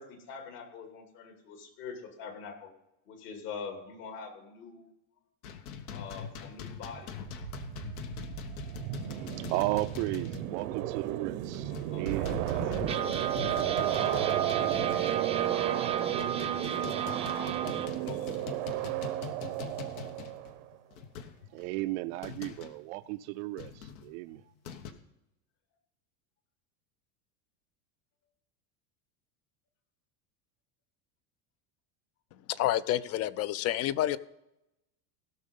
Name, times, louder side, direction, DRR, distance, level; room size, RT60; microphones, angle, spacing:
voice 1, 0.0-2.7 3.1-4.9 5.9-7.2 11.5-13.3 14.0-15.1 17.4-17.6 17.9-18.3, left 5 dB, 65° left, 2.9 m, -45 dB
sound 1, 5.4-10.7 10.9-11.1 11.5-15.5 16.0-22.8 23.6-24.9, left 7 dB, 85° left, 1.4 m, -43 dB
sound 2, 6.8-10.0 10.5-10.6 10.8-11.0 11.6-11.7 12.8-17.9, right 7 dB, 15° right, 0.5 m, -35 dB
sound 3, 7.3-20.7, right 14 dB, 85° right, 1.0 m, -33 dB
voice 2, 9.2-13.0 21.5-24.4, right 19 dB, 65° right, 0.5 m, -35 dB
voice 3, 32.5-34.2, left 13 dB, 40° left, 0.5 m, -29 dB
16.5 x 6.4 x 5.4 m
supercardioid pair, 140°, 41 cm